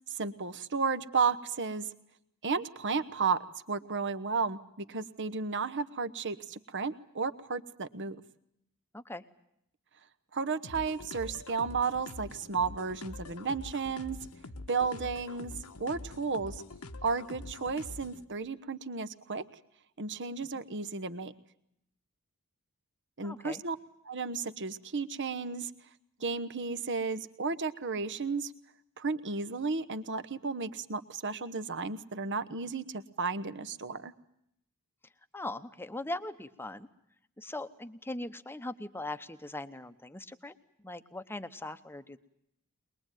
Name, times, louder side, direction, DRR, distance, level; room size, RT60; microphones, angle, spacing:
voice 1, 0.1-1.9 2.4-3.4 3.7-8.2 10.3-14.2 14.7-16.6 17.0-19.4 20.0-21.3 23.2-23.8 24.0-25.7 26.2-28.5 29.0-34.1, right 4 dB, 55° right, 14 dB, 1.1 m, -33 dB
sound 1, 10.6-18.2, left 2 dB, 80° left, 1.3 m, -45 dB
voice 2, 23.2-23.6 35.3-36.9 37.4-42.2, left 2 dB, 10° left, 12 dB, 0.9 m, -40 dB
22.5 x 21.5 x 9.1 m, 0.77 s
head